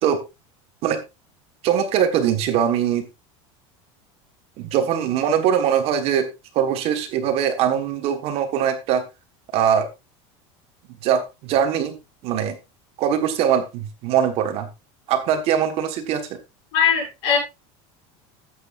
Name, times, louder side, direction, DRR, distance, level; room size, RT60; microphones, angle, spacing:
voice 1, 1.6-3.0 4.6-9.0 9.5-9.9 11.0-12.0 12.2-12.5 13.0-14.7 15.1-16.3, right 8 dB, 40° right, 7 dB, 1.4 m, -21 dB
voice 2, 16.7-17.4, left 8 dB, 60° left, -1 dB, 6.7 m, -20 dB
13.5 x 8.0 x 2.5 m, 0.24 s
cardioid pair, 175°, 15 cm